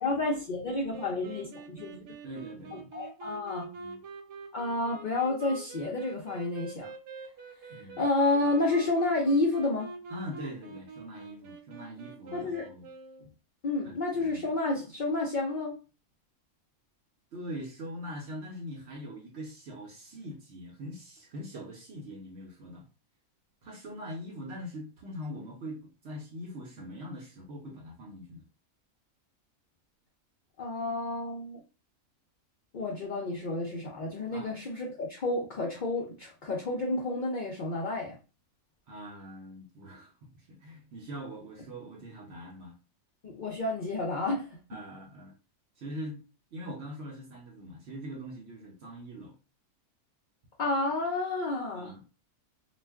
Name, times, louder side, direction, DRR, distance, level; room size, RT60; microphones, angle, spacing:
voice 1, 0.0-2.0 2.9-3.7 4.5-6.9 8.0-9.9 12.3-12.6 13.6-15.8 30.6-31.6 32.7-38.2 43.2-44.5 50.6-51.9, left 2 dB, 65° left, 0.4 m, -30 dB
sound 1, 0.7-13.3, right 4 dB, 80° right, 1.1 m, -45 dB
voice 2, 2.2-2.9 3.7-4.0 7.7-8.0 10.1-12.9 13.2-13.3 13.8-13.9 14.3-14.5 17.3-22.9 23.6-28.4 34.3-34.6 38.9-42.8 44.7-45.3 45.8-46.2 46.5-49.3 51.8-52.0, equal, 60° right, 0.8 m, -42 dB
2.4 x 2.2 x 3.4 m
omnidirectional pair, 1.5 m